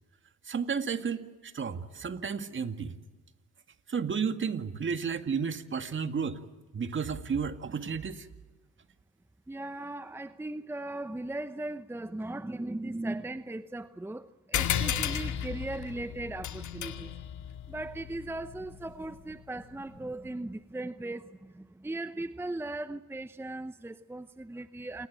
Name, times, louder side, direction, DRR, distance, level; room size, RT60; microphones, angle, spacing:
voice 1, 0.5-2.9 3.9-6.4 6.7-8.3, right 6 dB, 40° right, 2.1 m, -32 dB
voice 2, 9.5-17.1 17.7-25.1, right 2 dB, 10° right, 0.8 m, -38 dB
sound 1, 14.5-19.5, left 9 dB, 75° left, 2.1 m, -34 dB
28.5 x 20.0 x 8.8 m
cardioid pair, 90°, 30 cm